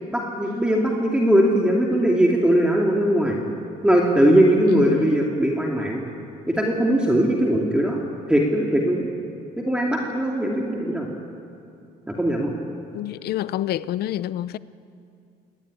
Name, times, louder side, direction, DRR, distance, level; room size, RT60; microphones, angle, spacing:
voice 1, 0.1-3.4 3.8-6.0 6.5-8.0 8.3-9.1 9.6-11.1 12.1-12.5, right 1 dB, 5° right, 2.7 m, -20 dB
voice 2, 4.7-5.2 12.9-14.6, left 13 dB, 70° left, 0.7 m, -27 dB
25.0 x 19.0 x 9.7 m
cardioid pair, 110°, 17 cm